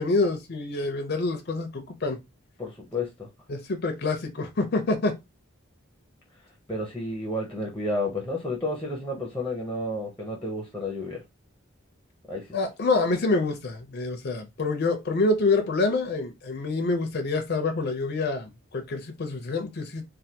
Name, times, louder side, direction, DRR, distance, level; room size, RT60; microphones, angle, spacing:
voice 1, 0.0-2.2 3.5-5.1 12.5-20.0, left 3 dB, 50° left, 0.6 m, -26 dB
voice 2, 2.6-3.3 6.7-11.2 12.3-12.5, left 1 dB, 5° left, 0.7 m, -31 dB
3.3 x 2.2 x 2.8 m
head